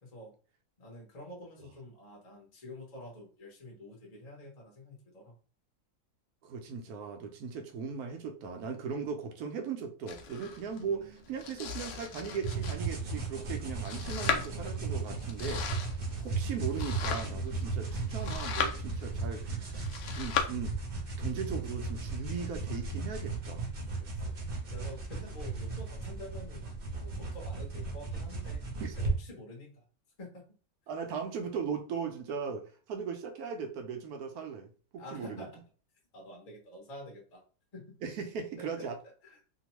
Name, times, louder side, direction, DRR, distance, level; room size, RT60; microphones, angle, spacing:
voice 1, 0.0-0.3 0.8-5.3 10.8-11.2 16.2-16.4 24.0-24.4 24.7-28.7 29.0-29.8 30.2-30.5 35.0-35.6 36.1-37.4 37.7-38.0 38.6-38.9 39.2-39.4, left 1 dB, 35° left, -1 dB, 0.8 m, -48 dB
voice 2, 6.4-15.6 16.2-23.7 28.8-28.9 30.9-35.5 38.0-39.0, right 6 dB, 75° right, 5 dB, 1.1 m, -38 dB
Domestic sounds home sounds, 10.1-20.4, left 7 dB, 75° left, 0.5 m, -38 dB
sound 1, 12.4-29.1, right 3 dB, 45° right, 0.8 m, -36 dB
2.9 x 2.1 x 2.9 m, 0.39 s
omnidirectional pair, 1.6 m